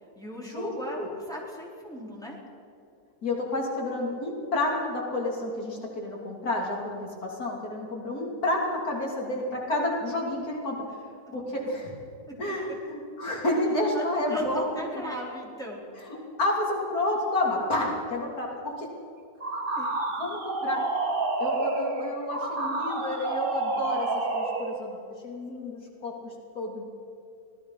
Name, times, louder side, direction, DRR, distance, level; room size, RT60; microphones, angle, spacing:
voice 1, 0.2-2.4 11.3-11.4 13.9-14.0 14.3-15.9 19.8-20.0, equal, ahead, -3 dB, 4.4 m, -37 dB
voice 2, 3.2-10.8 11.3-12.0 12.4-14.8 16.1-18.9 20.2-20.9 21.4-24.1 24.3-25.0 25.2-26.9, left 1 dB, 70° left, -2 dB, 3.7 m, -30 dB
sound 1, 19.4-24.8, right 3 dB, 35° right, 1.7 m, -29 dB
25.5 x 18.5 x 5.8 m, 2.7 s
omnidirectional pair, 1.6 m